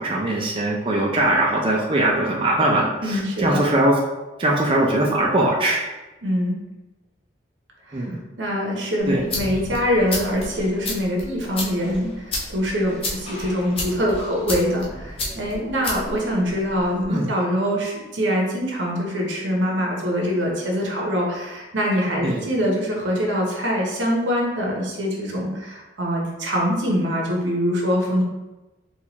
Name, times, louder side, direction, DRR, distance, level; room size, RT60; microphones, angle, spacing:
voice 1, 0.0-3.9 4.4-5.8 7.9-8.2 9.1-9.2 17.1-17.3 22.2-22.4, right 1 dB, 30° right, -2 dB, 0.4 m, -21 dB
voice 2, 3.0-3.6 6.2-6.6 7.9-8.1 8.4-28.2, equal, 90° right, -2 dB, 0.8 m, -24 dB
sound 1, 9.0-17.0, left 2 dB, 30° left, 0.6 m, -32 dB
4.1 x 2.4 x 2.9 m, 1.1 s
head